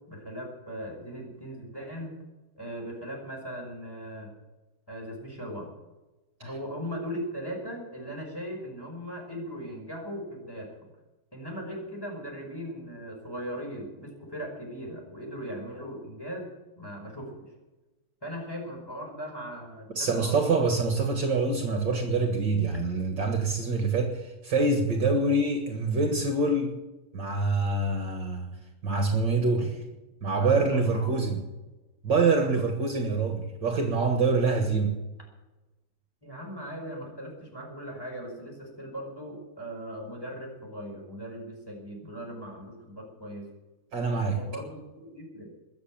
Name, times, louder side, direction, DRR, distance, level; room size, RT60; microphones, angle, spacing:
voice 1, 0.1-2.2 2.6-4.3 4.9-5.7 6.4-10.9 11.3-16.5 16.8-17.5 18.2-20.8 29.5-29.6 30.4-31.3 36.2-43.5 44.3-45.5, equal, 10° left, -1 dB, 5.4 m, -39 dB
voice 2, 20.0-26.7 27.1-28.5 28.8-29.7 30.2-31.4 32.0-34.9 43.9-44.4, right 3 dB, 55° right, 5 dB, 2.4 m, -25 dB
21.5 x 7.5 x 8.8 m, 1.1 s
omnidirectional pair, 2.4 m